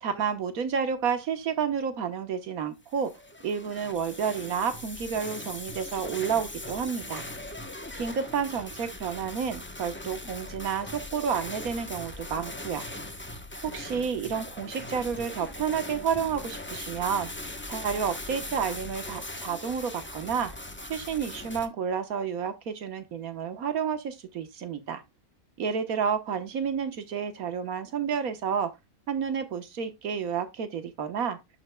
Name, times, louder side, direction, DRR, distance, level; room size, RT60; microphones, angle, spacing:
voice 1, 0.0-3.1 3.4-7.2 8.0-12.9 13.6-20.5 20.9-25.0 25.6-28.8 29.1-31.4, right 7 dB, 85° right, 1.6 m, -30 dB
sound 1, 2.9-21.7, left 1 dB, 10° left, 0.8 m, -40 dB
11.0 x 5.8 x 2.2 m
omnidirectional pair, 1.5 m